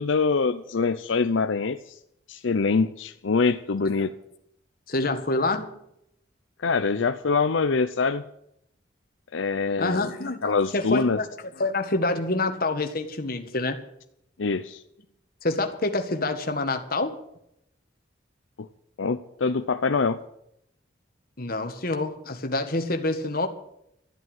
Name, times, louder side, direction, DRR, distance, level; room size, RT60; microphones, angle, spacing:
voice 1, 0.0-2.0 2.3-4.1 6.6-8.2 9.3-11.2 14.4-14.8 18.6-18.7 19.0-20.2, left 4 dB, 85° left, 10 dB, 0.6 m, -24 dB
voice 2, 4.9-5.7 9.8-11.2 11.6-13.8 15.4-17.2 21.4-23.5, left 2 dB, 50° left, 6 dB, 1.7 m, -27 dB
13.5 x 9.1 x 9.1 m, 0.77 s
head